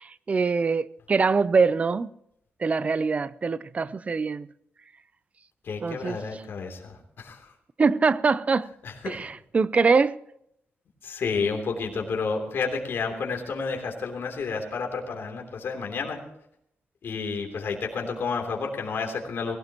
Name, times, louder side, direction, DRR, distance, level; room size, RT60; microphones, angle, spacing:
voice 1, 0.3-2.1 2.6-4.5 5.8-6.2 7.8-8.7 9.1-10.2, right 4 dB, 30° right, 0.5 m, -23 dB
voice 2, 5.6-7.4 8.8-9.2 11.0-16.2 17.0-19.6, left 4 dB, 60° left, 3.2 m, -30 dB
19.5 x 17.0 x 3.0 m
wide cardioid pair, 140°, 4 cm